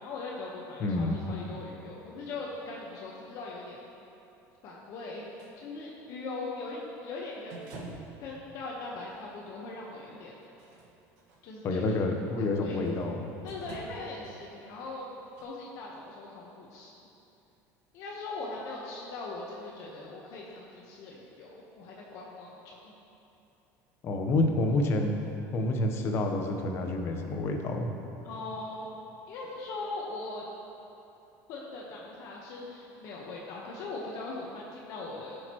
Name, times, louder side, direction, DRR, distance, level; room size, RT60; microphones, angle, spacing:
voice 1, 0.0-3.8 4.6-5.3 5.6-7.7 8.2-10.3 11.4-12.0 12.6-12.8 13.4-15.1 15.4-16.9 17.9-22.9 28.2-28.9 29.3-30.4 31.5-35.4, left 3 dB, 50° left, -3 dB, 1.1 m, -40 dB
voice 2, 0.8-1.1 11.6-13.3 24.0-25.1 25.5-27.9, left 2 dB, 35° left, 3 dB, 0.9 m, -28 dB
sound 1, 5.4-5.5 7.5-8.2 9.0-9.1 10.4-11.4 12.8-13.1 13.5-14.3 15.4-15.5, right 2 dB, 75° right, 1.5 m, -46 dB
15.0 x 6.5 x 3.0 m, 2.9 s
cardioid pair, 160°, 7 cm